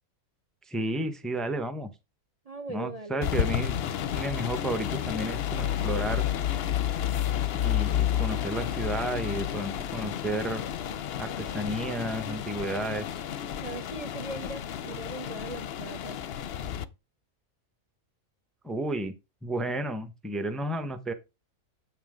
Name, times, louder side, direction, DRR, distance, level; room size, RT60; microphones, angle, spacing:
voice 1, 0.7-1.9 2.7-3.8 4.1-6.3 7.5-10.7 11.2-13.1 18.6-19.2 19.4-21.1, right 1 dB, ahead, 0.8 m, -32 dB
voice 2, 2.5-3.3 13.6-16.2, right 3 dB, 35° right, 0.7 m, -39 dB
sound 1, 3.2-16.9, left 10 dB, 55° left, 0.8 m, -31 dB
8.5 x 6.0 x 5.0 m
omnidirectional pair, 1.4 m